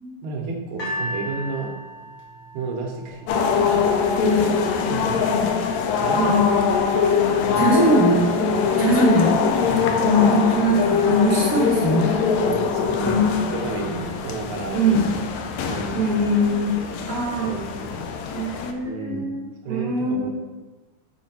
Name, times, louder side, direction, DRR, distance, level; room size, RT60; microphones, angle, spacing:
voice 1, 0.2-1.8 2.5-3.6 4.9-5.5 5.8-6.5 7.4-7.6 9.7-10.1 12.5-13.2 13.5-15.0 15.7-16.1 16.7-16.8 17.4-18.1 18.8-19.3 19.6-20.3, right 3 dB, 75° right, 1 dB, 2.3 m, -32 dB
sound 1, 0.8-4.0 4.7-4.8, equal, 60° left, 0.9 m, -34 dB
sound 2, 3.3-18.7, left 6 dB, 85° left, 1.5 m, -23 dB
voice 2, 4.2-4.6 5.2-5.6 6.1-6.5 7.5-8.2 8.8-9.3 10.0-12.2 12.9-13.4 14.7-15.2 15.9-16.8 17.1-17.5 18.3-19.4 19.7-20.3, equal, 45° right, -5 dB, 1.0 m, -21 dB
6.6 x 4.4 x 4.4 m, 1.2 s
omnidirectional pair, 3.6 m